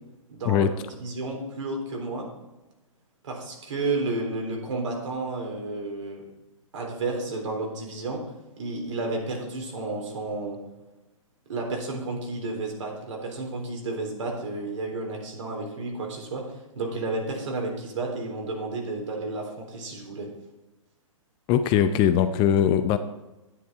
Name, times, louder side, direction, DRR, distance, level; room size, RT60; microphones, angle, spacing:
voice 1, 0.3-0.7 1.0-2.3 3.2-6.2 6.7-8.2 8.6-10.6 11.5-16.4 16.8-20.3, right 2 dB, 65° right, 0 dB, 3.6 m, -31 dB
voice 2, 21.5-23.0, left 9 dB, 25° left, 10 dB, 0.6 m, -21 dB
11.0 x 9.7 x 4.4 m, 1.0 s
figure-of-eight pair, 115°, 18 cm